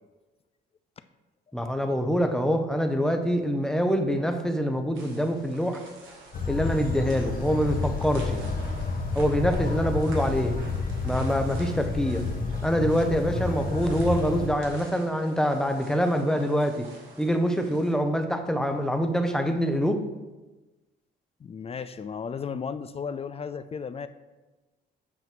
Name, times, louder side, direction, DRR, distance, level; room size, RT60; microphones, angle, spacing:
voice 1, 1.5-5.8 6.5-8.4 9.1-10.5 11.0-12.2 12.6-16.9 17.2-20.0, equal, 5° left, 5 dB, 0.7 m, -25 dB
sound 1, 4.9-17.9, right 2 dB, 80° right, 1.6 m, -49 dB
sound 2, 6.3-14.5, left 4 dB, 45° left, 0.9 m, -30 dB
voice 2, 21.4-24.1, left 6 dB, 30° left, 12 dB, 0.3 m, -34 dB
8.1 x 3.0 x 6.0 m, 1.2 s
cardioid pair, 90°, 20 cm